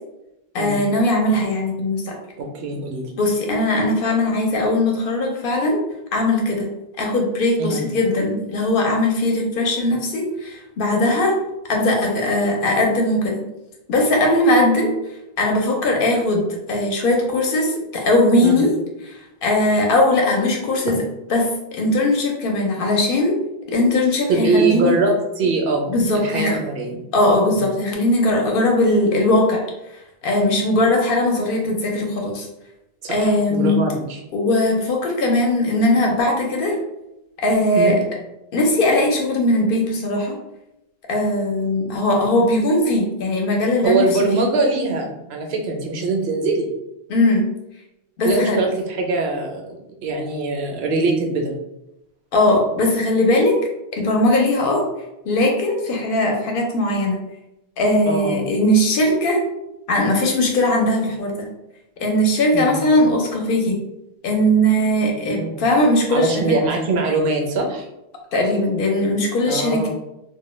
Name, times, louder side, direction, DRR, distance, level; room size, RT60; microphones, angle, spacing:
voice 1, 0.5-2.2 3.2-5.8 6.1-6.7 7.0-11.3 11.7-13.4 13.9-14.9 15.4-18.7 19.0-21.0 21.3-23.3 23.7-24.9 25.9-26.6 27.1-29.6 30.2-32.5 33.1-33.8 34.3-36.8 37.4-37.9 38.5-40.4 41.1-44.1 44.3-44.5 47.1-47.4 48.2-48.6 52.3-53.6 54.0-54.8 55.3-57.2 57.8-59.4 59.9-61.5 62.0-63.8 64.2-66.6 68.3-69.9, left 1 dB, 65° left, 1 dB, 0.7 m, -19 dB
voice 2, 2.4-3.1 7.6-7.8 18.4-18.5 20.9-21.0 24.3-27.0 33.0-34.2 37.8-38.0 43.8-46.7 48.2-49.6 50.0-51.5 58.1-58.4 62.5-62.8 65.1-65.5 66.1-67.9 69.5-69.9, right 3 dB, 80° right, 1 dB, 0.8 m, -22 dB
2.1 x 2.1 x 3.0 m, 0.90 s
omnidirectional pair, 1.1 m